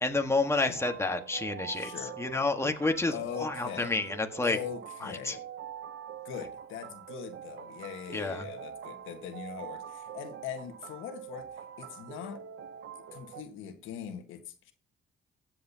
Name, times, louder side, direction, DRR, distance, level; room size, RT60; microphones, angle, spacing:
voice 1, 0.0-4.6 5.0-5.4 8.1-8.5, left 3 dB, 15° left, 5 dB, 1.4 m, -30 dB
sound 1, 0.8-13.4, right 9 dB, 70° right, 0.8 m, -44 dB
voice 2, 1.7-2.1 3.1-3.9 4.4-5.4 6.2-12.4 12.9-14.7, left 9 dB, 90° left, 6 dB, 1.5 m, -41 dB
15.5 x 7.7 x 2.8 m, 0.35 s
cardioid pair, 90°, 20 cm